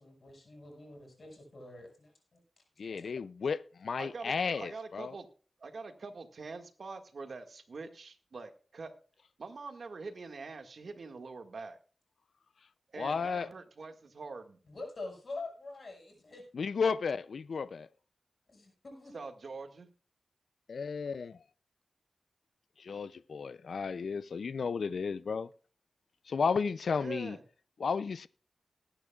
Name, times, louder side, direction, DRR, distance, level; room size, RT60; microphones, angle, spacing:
voice 1, 0.0-2.4 2.8-3.1 13.1-13.2 14.7-16.4 18.5-19.1, left 2 dB, 65° left, 6.1 m, -46 dB
voice 2, 2.8-5.1 13.0-13.5 16.5-17.9 20.7-21.4 22.8-25.5 26.3-27.4 27.8-28.3, left 5 dB, 85° left, 0.4 m, -33 dB
voice 3, 4.0-5.3 5.6-8.9 9.4-11.8 12.9-14.6 19.1-19.9 27.0-27.4, right 4 dB, 75° right, 1.8 m, -44 dB
20.5 x 9.9 x 2.4 m
cardioid pair, 55°, 0 cm